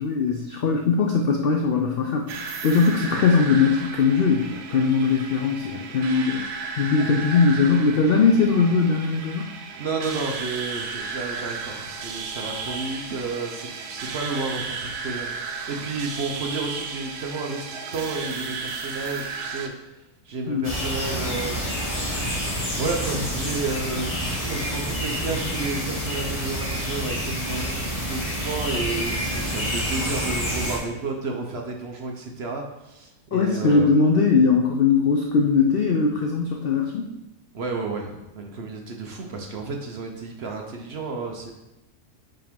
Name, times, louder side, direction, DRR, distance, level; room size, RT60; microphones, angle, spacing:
voice 1, 0.0-6.4 6.8-9.5 20.5-20.7 33.3-37.1, left 5 dB, 85° left, 2 dB, 0.5 m, -20 dB
sound 1, 2.3-19.7, right 5 dB, 90° right, 1.2 m, -34 dB
voice 2, 9.8-15.3 15.7-19.9 20.2-21.6 22.8-33.9 37.5-41.5, right 3 dB, 55° right, 1 dB, 0.8 m, -31 dB
sound 2, 20.6-30.8, equal, 25° left, 1.2 m, -28 dB
5.7 x 3.4 x 5.1 m, 0.93 s
omnidirectional pair, 1.6 m